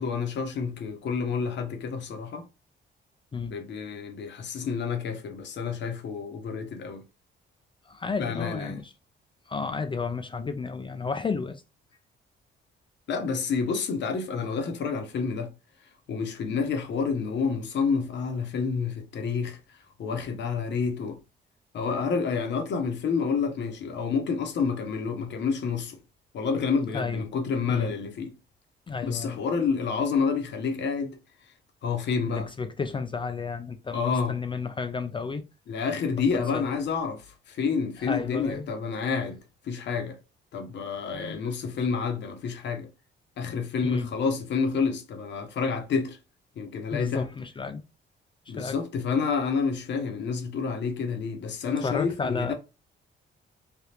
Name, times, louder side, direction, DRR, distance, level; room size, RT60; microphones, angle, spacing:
voice 1, 0.0-2.5 3.5-7.0 8.2-8.8 13.1-15.5 16.1-19.6 20.0-21.2 21.7-26.0 26.3-28.3 29.0-31.2 31.8-32.5 33.9-34.4 35.7-39.4 39.6-40.2 40.5-42.9 43.4-46.2 46.6-47.3 48.5-52.5, left 5 dB, 65° left, 0.8 m, -29 dB
voice 2, 7.9-8.9 9.5-11.6 26.9-27.3 27.7-27.9 28.9-29.4 32.3-35.4 36.5-36.6 38.0-38.7 41.1-41.4 43.8-44.1 46.9-47.8 48.5-48.8 51.8-52.5, left 4 dB, 25° left, 0.3 m, -32 dB
3.4 x 2.4 x 2.8 m
cardioid pair, 90°, 20 cm